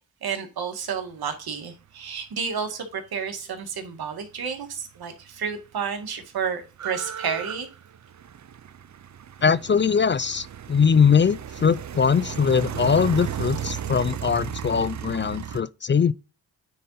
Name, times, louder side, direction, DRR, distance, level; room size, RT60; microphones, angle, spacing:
voice 1, 0.2-7.7, right 6 dB, 80° right, 1.8 m, -31 dB
sound 1, 4.9-5.0 5.2-15.6, right 9 dB, 50° right, 0.7 m, -35 dB
voice 2, 9.4-16.1, left 6 dB, 30° left, 0.4 m, -21 dB
9.4 x 4.1 x 4.0 m
cardioid pair, 60°, 37 cm